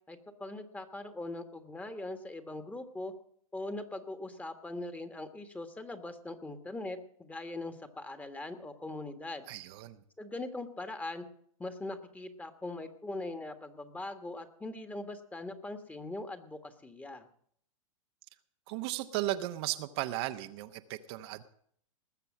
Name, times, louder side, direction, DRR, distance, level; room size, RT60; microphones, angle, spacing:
voice 1, 0.1-3.1 3.5-9.5 10.2-11.2 11.6-17.3, left 2 dB, 10° left, 8 dB, 1.5 m, -41 dB
voice 2, 9.5-10.0 18.7-21.4, right 15 dB, 50° right, 7 dB, 0.9 m, -35 dB
20.0 x 6.8 x 7.4 m, 0.63 s
hypercardioid pair, 110°, 18 cm